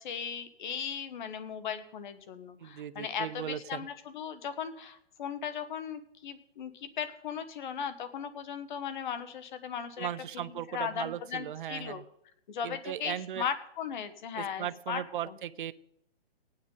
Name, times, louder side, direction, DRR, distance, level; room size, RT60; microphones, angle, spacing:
voice 1, 0.0-10.1 10.3-12.0 12.5-15.4, left 7 dB, 50° left, 11 dB, 1.4 m, -37 dB
voice 2, 2.6-3.9 10.0-12.0 12.6-13.4 14.4-15.7, right 10 dB, 50° right, 14 dB, 0.7 m, -37 dB
17.5 x 9.6 x 4.0 m, 0.75 s
hypercardioid pair, 160°, 32 cm